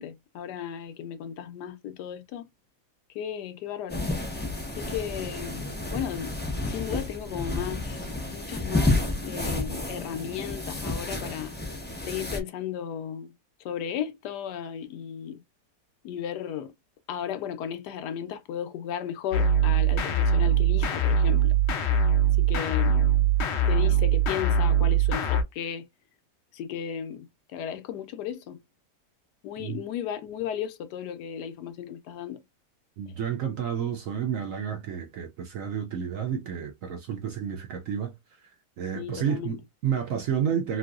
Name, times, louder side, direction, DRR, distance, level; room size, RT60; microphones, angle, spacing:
voice 1, 0.0-2.5 3.1-4.1 4.7-5.6 5.9-6.4 6.6-11.5 12.0-13.3 13.6-15.4 16.0-16.7 17.1-21.5 22.4-23.1 23.7-25.9 26.5-28.6 29.4-32.4 38.9-39.6, left 9 dB, 80° left, 1.2 m, -35 dB
sound 1, 3.9-12.4, left 2 dB, 10° left, 0.4 m, -31 dB
sound 2, 19.3-25.4, right 5 dB, 60° left, 0.7 m, -22 dB
voice 2, 33.0-38.1 38.8-40.8, right 8 dB, 70° right, 0.8 m, -30 dB
3.0 x 2.7 x 2.4 m
omnidirectional pair, 1.8 m